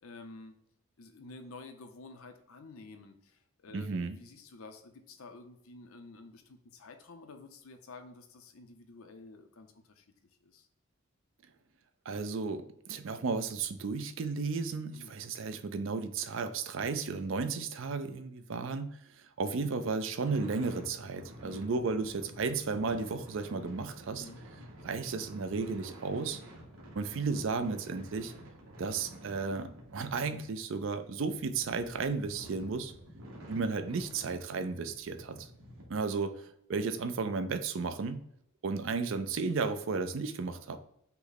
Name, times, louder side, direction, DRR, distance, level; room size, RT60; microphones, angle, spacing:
voice 1, 0.0-0.6 1.0-10.1 10.4-10.7 14.9-15.2 18.5-18.7 21.4-21.7 24.2-24.4, left 3 dB, 75° left, 7 dB, 0.6 m, -51 dB
voice 2, 3.7-4.2 12.1-18.9 19.2-24.2 24.8-26.4 26.9-28.3 28.8-32.9 33.5-35.5 35.9-38.2 38.6-40.8, right 4 dB, 60° right, 10 dB, 0.4 m, -34 dB
sound 1, 20.2-35.8, equal, 85° right, 1.3 m, -51 dB
5.6 x 2.1 x 4.0 m, 0.75 s
head